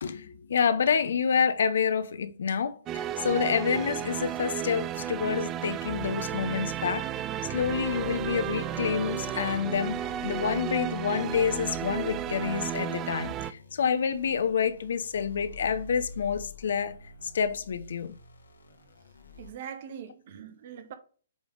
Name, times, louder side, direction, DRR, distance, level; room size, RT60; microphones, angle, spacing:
voice 1, 0.0-7.1 7.5-17.0 17.3-18.2, left 7 dB, 65° left, 0.7 m, -28 dB
sound 1, 2.9-13.5, right 11 dB, 25° right, 0.4 m, -33 dB
sound 2, 7.6-19.5, left 2 dB, 85° left, 1.7 m, -47 dB
voice 2, 19.4-20.9, right 8 dB, 50° right, 1.1 m, -42 dB
8.7 x 3.5 x 3.8 m
figure-of-eight pair, 125°, 0 cm